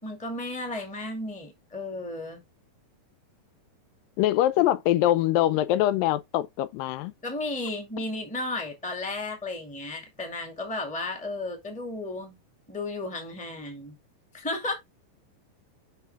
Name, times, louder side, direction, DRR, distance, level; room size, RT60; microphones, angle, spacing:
voice 1, 0.0-2.4 7.2-12.4 12.7-13.9 14.3-14.7, left 2 dB, 5° left, 1.3 m, -34 dB
voice 2, 4.2-7.1, left 13 dB, 80° left, 2.3 m, -23 dB
6.7 x 5.6 x 3.4 m
omnidirectional pair, 4.0 m